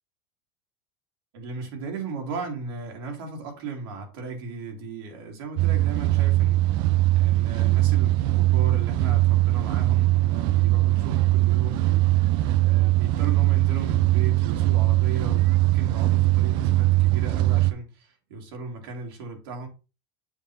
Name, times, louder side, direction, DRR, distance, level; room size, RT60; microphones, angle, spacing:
voice 1, 1.3-6.8 7.1-12.3 12.6-19.7, right 4 dB, 70° right, 2.1 m, -36 dB
sound 1, 5.6-17.7, right 17 dB, 40° right, 0.4 m, -21 dB
7.2 x 2.8 x 5.4 m
supercardioid pair, 170°, 12 cm